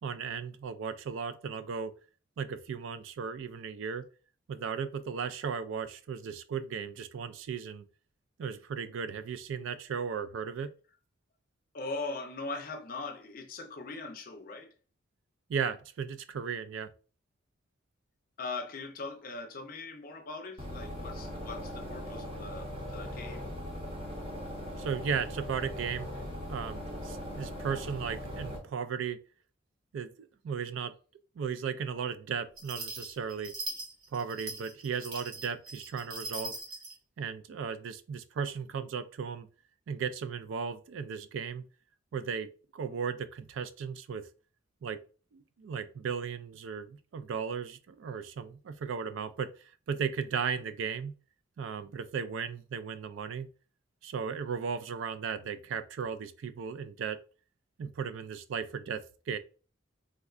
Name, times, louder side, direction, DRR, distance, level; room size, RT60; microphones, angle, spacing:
voice 1, 0.0-1.9 2.4-4.1 4.5-7.9 8.4-10.7 15.5-16.9 24.8-26.1 26.5-29.2 29.9-30.9 31.4-33.5 34.1-36.6 37.2-39.5 39.9-41.6 42.1-44.3 44.8-45.0 45.3-51.1 51.6-53.5 54.0-57.2 57.8-59.4, right 6 dB, 70° right, 0.3 m, -36 dB
voice 2, 11.7-14.7 18.4-23.5, left 3 dB, 45° left, 0.5 m, -40 dB
sound 1, 20.6-28.6, equal, 30° right, 0.8 m, -40 dB
sound 2, 32.6-37.0, right 2 dB, 90° right, 1.3 m, -41 dB
3.6 x 2.2 x 2.3 m
head